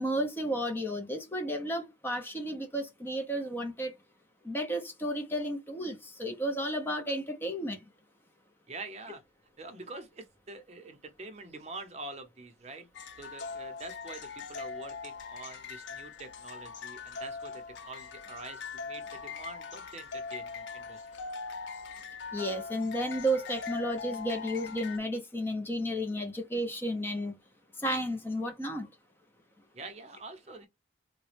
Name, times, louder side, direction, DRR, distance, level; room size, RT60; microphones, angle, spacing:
voice 1, 0.0-3.9 4.4-7.8 22.3-27.3 27.8-28.9, equal, 10° left, 0.6 m, -32 dB
voice 2, 8.7-9.2 9.6-12.9 13.2-21.1 29.7-30.7, right 3 dB, 35° right, 0.7 m, -45 dB
sound 1, 12.9-25.0, left 5 dB, 90° left, 0.6 m, -41 dB
3.9 x 2.2 x 3.2 m
head